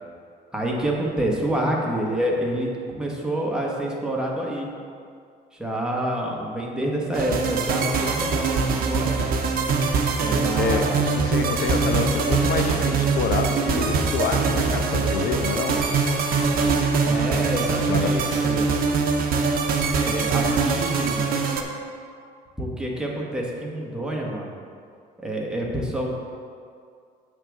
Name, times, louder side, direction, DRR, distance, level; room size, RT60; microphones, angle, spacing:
voice 1, 0.5-4.7 5.6-9.2 10.2-11.1 17.0-18.7 20.0-21.3 22.6-24.5 25.2-26.1, right 1 dB, 5° right, -2 dB, 1.2 m, -27 dB
sound 1, 7.1-21.6, right 4 dB, 60° right, 0.8 m, -23 dB
voice 2, 10.6-15.8 17.9-18.4, left 5 dB, 65° left, 5 dB, 0.7 m, -27 dB
7.8 x 3.5 x 6.2 m, 2.3 s
cardioid pair, 110°, 17 cm